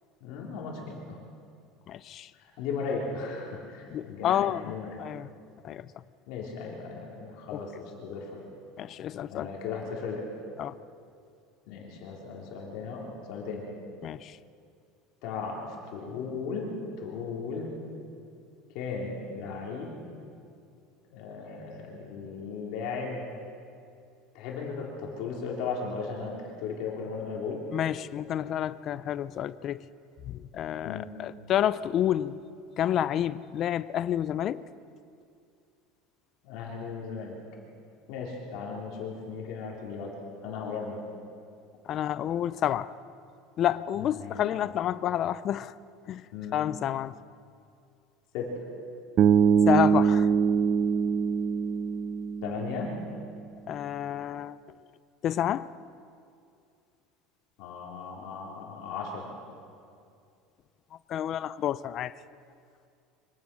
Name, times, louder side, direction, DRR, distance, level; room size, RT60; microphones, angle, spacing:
voice 1, 0.2-1.2 2.3-5.0 6.3-8.4 9.3-10.3 11.7-13.7 15.2-16.7 17.0-17.7 18.7-20.2 21.1-23.4 24.3-27.6 30.8-31.1 36.4-37.4 38.1-40.1 40.4-41.0 44.0-44.4 46.3-46.6 48.3-48.6 52.4-53.0 57.6-59.4, left 5 dB, 55° left, -2 dB, 4.0 m, -36 dB
voice 2, 1.9-2.3 3.9-4.6 5.0-5.3 5.6-5.9 8.8-9.5 10.6-10.7 14.0-14.4 27.7-29.9 30.3-32.4 32.8-34.6 40.6-40.7 41.8-42.9 43.6-45.7 46.0-46.2 46.5-47.1 49.7-50.3 53.7-54.6 55.2-55.7 61.1-62.1, left 11 dB, 30° left, 16 dB, 0.5 m, -29 dB
Bass guitar, 49.2-53.3, right 7 dB, 30° right, 0.4 m, -23 dB
24.5 x 18.0 x 6.3 m, 2.4 s
cardioid pair, 175°, 0 cm